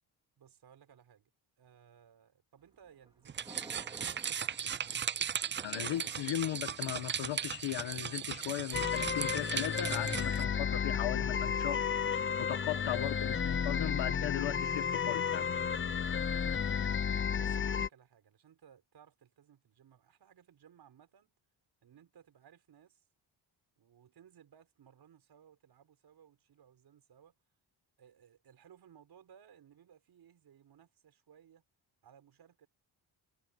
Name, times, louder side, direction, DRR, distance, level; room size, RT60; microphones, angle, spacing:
voice 1, 0.4-1.3 1.6-4.5 10.2-10.3 12.8-13.0 17.0-21.3 21.8-23.0 23.8-27.3 28.0-31.6 32.0-32.7, right 8 dB, 60° right, 5.8 m, -61 dB
Thunder, 2.6-8.6, right 2 dB, 10° right, 3.1 m, -56 dB
sound 1, 3.3-10.4, right 8 dB, 25° right, 0.4 m, -37 dB
voice 2, 5.6-11.8 12.4-15.4, left 13 dB, 80° left, 1.6 m, -37 dB
sound 2, 8.7-17.9, left 7 dB, 25° left, 0.8 m, -32 dB
cardioid pair, 150°, 44 cm